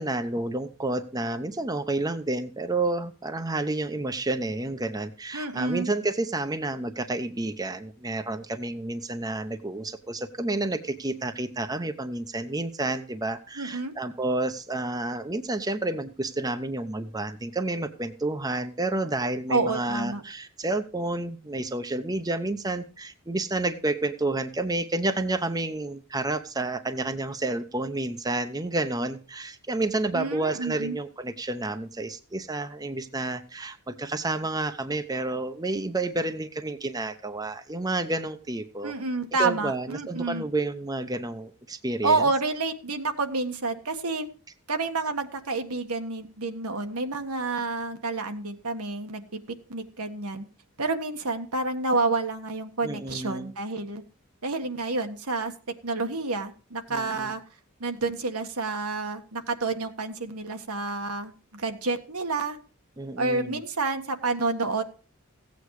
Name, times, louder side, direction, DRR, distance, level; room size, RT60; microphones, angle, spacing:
voice 1, 0.0-38.9 39.4-42.2 52.8-53.5 56.9-57.3 63.0-63.6, right 2 dB, 15° right, 8 dB, 0.8 m, -30 dB
voice 2, 5.3-5.9 13.6-13.9 19.5-20.2 30.1-31.0 38.8-40.4 42.0-44.3 44.7-49.2 49.7-50.4 50.8-54.0 54.4-55.5 55.8-57.4 57.8-62.6 63.2-64.8, right 3 dB, 85° right, 6 dB, 1.7 m, -29 dB
16.0 x 8.4 x 4.8 m, 0.36 s
head